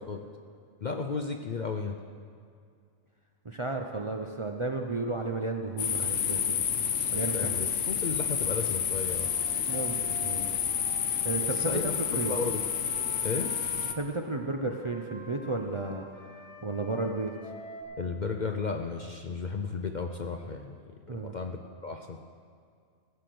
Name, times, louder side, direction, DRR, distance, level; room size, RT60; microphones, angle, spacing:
voice 1, 0.8-2.0 6.0-6.1 7.1-9.3 11.4-11.9 12.2-12.6 13.2-13.5 18.0-22.2, left 4 dB, 45° left, 4 dB, 0.6 m, -34 dB
voice 2, 3.4-6.4 7.1-7.5 9.7-10.5 11.2-12.4 13.9-16.1 16.6-17.3 21.1-21.3, right 3 dB, 30° right, 2 dB, 0.6 m, -33 dB
sound 1, 5.8-13.9, left 8 dB, 70° left, 1.1 m, -30 dB
Wind instrument woodwind instrument, 9.2-14.0 14.7-17.8, right 1 dB, 30° left, 1.8 m, -48 dB
16.0 x 6.8 x 7.7 m, 2.3 s
omnidirectional pair, 1.3 m